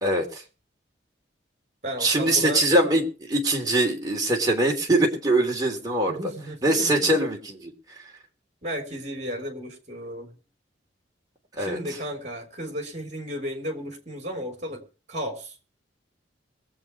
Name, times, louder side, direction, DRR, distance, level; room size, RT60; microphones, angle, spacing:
voice 1, 0.0-0.4 2.0-6.2 6.6-7.7 11.6-11.8, right 1 dB, 20° right, 0 dB, 3.1 m, -22 dB
voice 2, 1.8-2.6 6.1-7.2 8.6-10.4 11.6-14.8 15.1-15.6, equal, 40° right, 5 dB, 3.5 m, -34 dB
22.0 x 8.0 x 4.6 m, 0.35 s
head